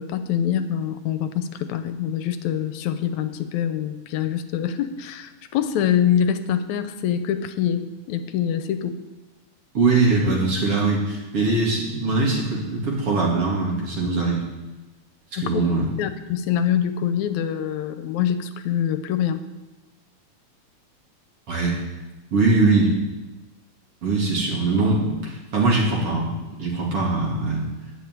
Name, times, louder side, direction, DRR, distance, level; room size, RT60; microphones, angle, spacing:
voice 1, 0.0-9.0 15.4-15.6 16.0-19.4, left 9 dB, 80° left, 10 dB, 2.0 m, -25 dB
voice 2, 9.7-14.4 15.3-15.9 21.5-21.8 22.3-22.9 24.0-26.3 26.6-27.7, right 3 dB, 50° right, -3 dB, 3.5 m, -21 dB
11.0 x 6.8 x 9.4 m, 1.1 s
omnidirectional pair, 3.3 m